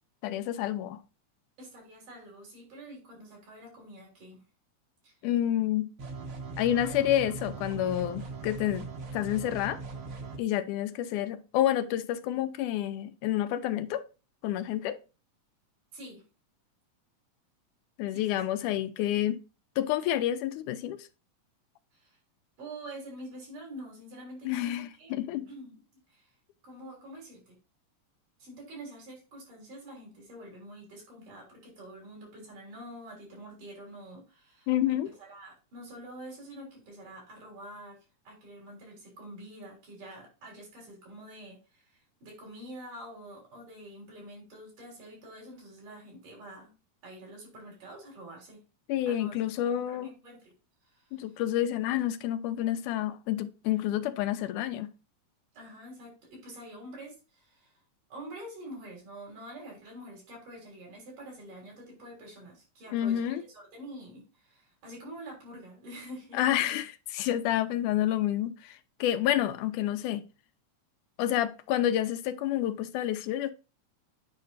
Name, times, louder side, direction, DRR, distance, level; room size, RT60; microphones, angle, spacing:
voice 1, 0.2-1.0 5.2-5.9 6.6-9.8 10.4-14.0 14.4-15.0 18.0-19.4 19.8-21.1 24.4-25.5 34.7-35.1 48.9-50.1 51.1-54.9 62.9-63.4 66.4-70.3 71.2-73.5, left 12 dB, 85° left, 2.1 m, -29 dB
voice 2, 1.6-4.4 5.0-5.2 6.8-7.2 15.9-16.2 18.1-18.4 21.9-22.2 22.6-25.1 25.5-25.8 26.1-26.3 26.6-27.6 28.4-38.0 38.3-46.7 47.0-48.6 49.1-49.3 49.8-50.6 50.8-51.4 55.5-57.7 58.1-66.8, right 1 dB, 75° right, 5.3 m, -47 dB
sound 1, 6.0-10.4, right 4 dB, 50° right, 1.8 m, -40 dB
9.3 x 5.3 x 2.6 m
omnidirectional pair, 3.6 m